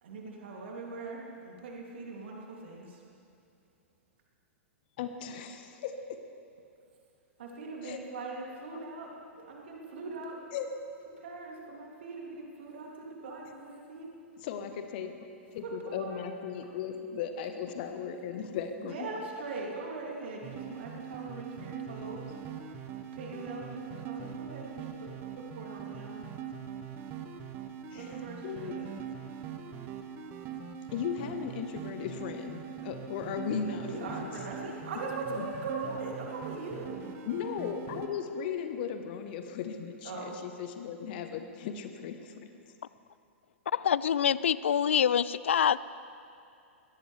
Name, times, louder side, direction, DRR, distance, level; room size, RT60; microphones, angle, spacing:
voice 1, 0.0-3.0 7.4-10.6 11.2-14.1 15.6-16.3 18.8-22.6 23.1-26.3 27.9-29.0 33.8-37.1 40.0-40.4, right 3 dB, 60° right, -2 dB, 2.8 m, -41 dB
voice 2, 5.0-6.2 7.8-8.0 10.5-10.7 14.4-19.1 27.9-28.2 28.4-28.7 30.9-34.3 35.3-35.5 37.3-42.5, left 7 dB, 45° left, 7 dB, 1.1 m, -37 dB
sound 1, 20.4-38.1, right 8 dB, 30° right, 1.2 m, -42 dB
voice 3, 43.7-45.8, left 8 dB, 65° left, 19 dB, 0.4 m, -25 dB
22.0 x 17.0 x 3.4 m, 2.6 s
figure-of-eight pair, 105°, 7 cm